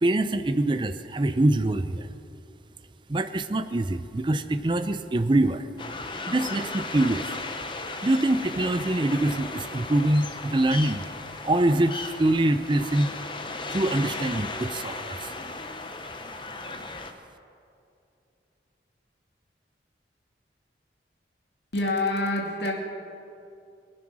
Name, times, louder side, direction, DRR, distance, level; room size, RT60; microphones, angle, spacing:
voice 1, 0.0-2.1 3.1-5.7 6.3-7.3 8.0-11.0 11.4-13.1 13.7-15.3, right 1 dB, 25° right, 10 dB, 0.4 m, -24 dB
sound 1, 5.8-17.1, left 3 dB, 25° left, 0.8 m, -36 dB
voice 2, 21.7-22.7, left 2 dB, 75° left, 1 dB, 2.3 m, -26 dB
21.0 x 9.4 x 6.1 m, 2.6 s
head